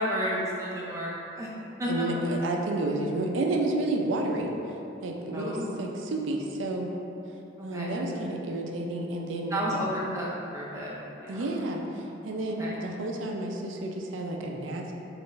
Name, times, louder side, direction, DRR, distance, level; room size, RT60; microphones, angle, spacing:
voice 1, 0.0-1.5 1.8-2.0 5.3-5.8 7.6-7.9 9.5-10.3 10.5-10.9 11.2-11.5 12.6-12.8, equal, 15° right, -6 dB, 0.5 m, -31 dB
voice 2, 1.8-4.5 5.0-6.9 7.6-9.8 11.3-14.9, right 2 dB, 75° right, 1 dB, 0.4 m, -30 dB
4.3 x 2.5 x 3.1 m, 2.9 s
head